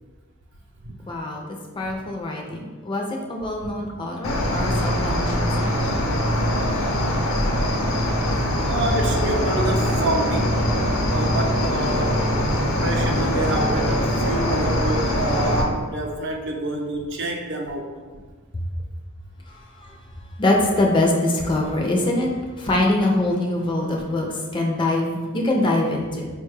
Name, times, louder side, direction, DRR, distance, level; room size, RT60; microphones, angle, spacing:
voice 1, 1.1-1.4 1.8-5.8 20.4-22.3 22.6-24.3 24.5-26.3, left 1 dB, 25° left, 0 dB, 0.4 m, -23 dB
Cricket, 4.2-15.6, equal, 75° left, 0.6 m, -22 dB
voice 2, 8.7-10.5 11.1-12.2 12.8-18.0, right 1 dB, 55° right, 1 dB, 0.5 m, -27 dB
4.2 x 2.2 x 3.1 m, 1.4 s
head